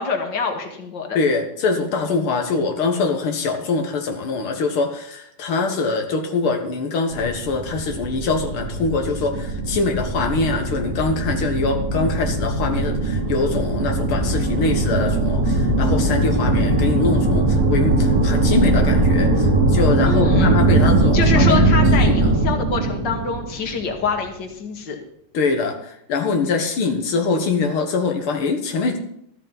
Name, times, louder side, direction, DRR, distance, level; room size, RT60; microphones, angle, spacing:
voice 1, 0.0-1.2 20.1-20.6 21.1-25.0, left 5 dB, 60° left, 4 dB, 2.5 m, -25 dB
voice 2, 1.1-21.6 22.0-22.3 25.3-29.0, left 4 dB, 90° left, 4 dB, 2.4 m, -23 dB
sound 1, 7.1-24.1, right 2 dB, 50° right, 2.2 m, -20 dB
14.0 x 13.0 x 4.1 m, 0.72 s
omnidirectional pair, 2.3 m